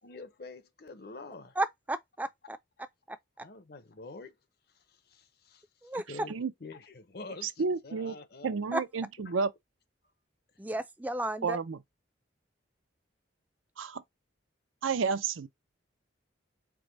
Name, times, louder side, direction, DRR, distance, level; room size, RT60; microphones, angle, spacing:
voice 1, 0.0-1.6 3.4-4.4 4.7-8.6 9.3-9.4, left 3 dB, 50° left, 0.7 m, -47 dB
voice 2, 1.6-2.6 3.1-3.2 5.8-6.0 8.7-8.8 10.6-11.6, right 1 dB, 10° right, 0.4 m, -33 dB
voice 3, 7.4-8.1 8.4-9.5 11.4-11.8 13.8-14.0 14.8-15.5, right 5 dB, 90° right, 0.6 m, -31 dB
4.8 x 2.1 x 3.8 m
head